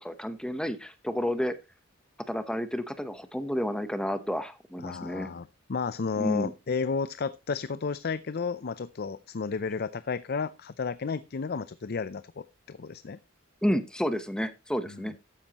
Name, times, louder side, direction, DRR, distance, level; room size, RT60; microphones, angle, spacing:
voice 1, 0.0-1.6 2.3-5.3 6.1-6.5 13.6-15.2, equal, 5° left, 11 dB, 0.9 m, -30 dB
voice 2, 4.8-13.2 14.9-15.0, left 5 dB, 50° left, 15 dB, 0.5 m, -32 dB
13.5 x 9.9 x 2.9 m, 0.26 s
head